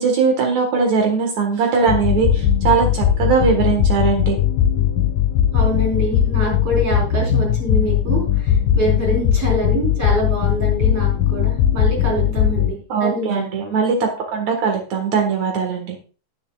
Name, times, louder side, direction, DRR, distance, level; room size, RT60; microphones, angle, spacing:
voice 1, 0.0-4.4 12.9-16.0, right 5 dB, 65° right, 2 dB, 2.8 m, -20 dB
sound 1, 1.9-12.7, left 10 dB, 80° left, 2.6 m, -18 dB
voice 2, 5.5-13.6, right 1 dB, 45° right, -2 dB, 5.3 m, -25 dB
18.0 x 7.2 x 2.4 m, 0.36 s
omnidirectional pair, 3.6 m